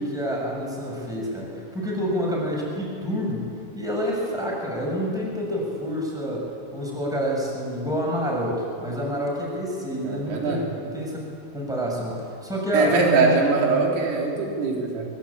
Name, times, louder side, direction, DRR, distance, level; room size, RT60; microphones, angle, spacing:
voice 1, 0.0-3.4 3.7-11.2 11.5-13.2, equal, ahead, -2 dB, 6.7 m, -28 dB
voice 2, 10.0-10.6 12.7-15.1, right 4 dB, 80° right, -1 dB, 6.3 m, -22 dB
24.5 x 24.5 x 8.8 m, 2.4 s
omnidirectional pair, 5.8 m